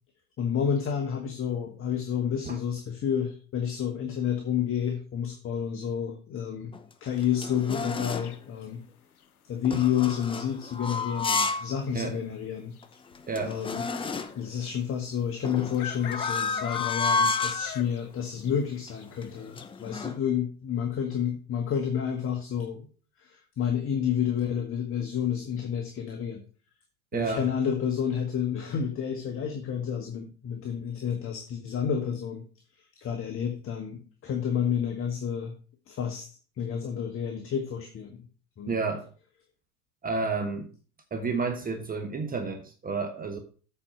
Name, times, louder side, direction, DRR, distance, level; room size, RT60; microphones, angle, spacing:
voice 1, 0.4-6.7 7.0-8.8 9.5-12.8 13.4-13.9 14.4-22.9 23.2-26.4 27.1-32.4 33.0-35.6 35.9-36.3 36.6-38.3 38.6-38.8, left 8 dB, 30° left, 4 dB, 1.3 m, -30 dB
sound 1, 6.7-8.4 9.6-11.7 12.1-12.2 12.8-12.9 13.1-14.5 15.4-17.7 18.3-18.6 18.9-20.2, left 3 dB, 10° left, 0.7 m, -32 dB
sound 2, 8.2-8.7 10.5-10.9 11.2-11.3 11.5-12.0 12.8-12.9 13.1-13.2 14.8-14.9 15.8-18.1 18.4-18.5 19.0-19.1 19.6-19.7, left 10 dB, 75° left, 0.8 m, -34 dB
voice 2, 13.3-13.6 27.1-27.5 38.7-39.1 40.0-40.7 41.1-43.4, right 4 dB, 20° right, 5 dB, 1.2 m, -30 dB
8.3 x 4.6 x 6.1 m, 0.40 s
figure-of-eight pair, 80°, 44 cm